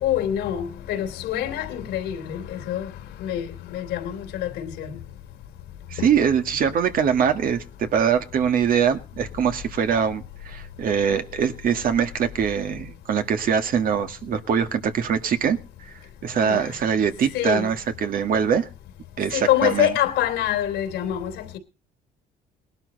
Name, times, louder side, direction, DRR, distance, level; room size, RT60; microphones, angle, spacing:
voice 1, 0.0-2.9 3.2-4.9 6.0-6.1 16.4-16.6 17.3-17.7 19.3-21.6, left 11 dB, 85° left, 3.0 m, -25 dB
voice 2, 5.9-15.9 16.2-17.8 18.0-18.7 19.2-19.9, right 7 dB, 55° right, 1.9 m, -23 dB
19.0 x 12.0 x 4.1 m
cardioid pair, 110°, 17 cm